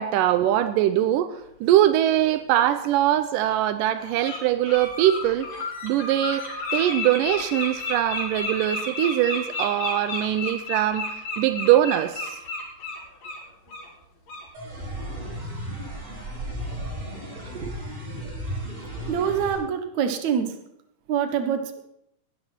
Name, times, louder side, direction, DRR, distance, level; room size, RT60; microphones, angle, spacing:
voice 1, 0.0-5.5 5.8-6.5 6.7-11.1 11.4-12.4 17.5-17.7, right 12 dB, 90° right, 12 dB, 2.3 m, -22 dB
Bird, 2.6-2.7 3.4-3.6 4.0-4.4 4.6-13.4 13.7-13.9 14.3-14.4, left 3 dB, 80° left, 5.2 m, -31 dB
sound 1, 14.5-19.5, right 1 dB, 50° right, 9.3 m, -34 dB
voice 2, 19.1-20.5 21.1-21.6, right 8 dB, 65° right, 7 dB, 2.5 m, -24 dB
19.0 x 12.0 x 4.5 m, 0.81 s
omnidirectional pair, 3.7 m